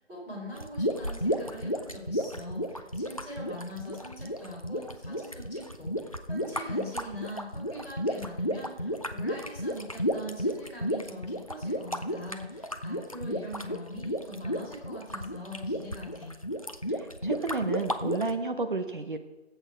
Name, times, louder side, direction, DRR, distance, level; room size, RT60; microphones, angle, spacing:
voice 1, 0.0-16.3, equal, 5° right, -11 dB, 2.7 m, -42 dB
sound 1, 0.5-18.3, equal, 30° left, 0.5 m, -33 dB
voice 2, 16.9-19.2, right 3 dB, 45° right, 7 dB, 0.8 m, -32 dB
15.0 x 8.2 x 4.5 m, 1.0 s
figure-of-eight pair, 170°, 34 cm